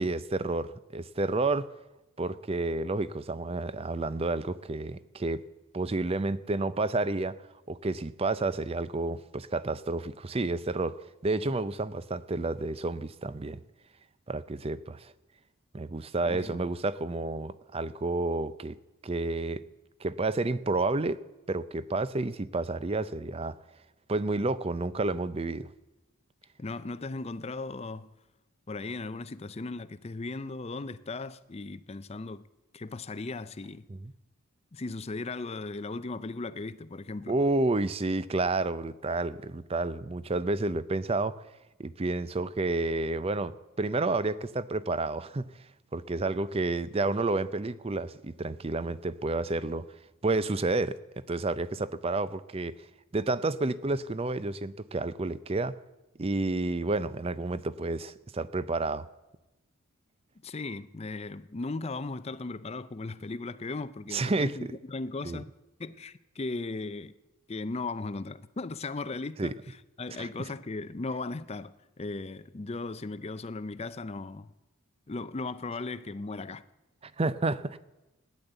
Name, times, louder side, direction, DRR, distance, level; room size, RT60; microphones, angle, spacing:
voice 1, 0.0-1.7 2.2-5.4 5.7-13.6 14.3-15.1 15.7-18.8 19.0-19.6 20.0-21.2 21.5-23.6 24.1-25.7 33.9-34.1 37.3-41.4 41.8-49.8 50.2-51.0 51.3-52.9 53.1-55.8 56.2-59.1 64.1-64.8 65.2-65.4 69.4-69.5 70.2-70.5 77.0-77.8, right 2 dB, 25° right, 0.5 m, -30 dB
voice 2, 16.2-16.6 26.6-28.1 28.7-32.5 32.7-33.9 34.7-37.3 60.4-65.5 65.8-67.1 67.5-69.5 70.0-74.5 75.1-76.6, left 3 dB, 30° left, 0.5 m, -37 dB
16.0 x 10.5 x 8.0 m
head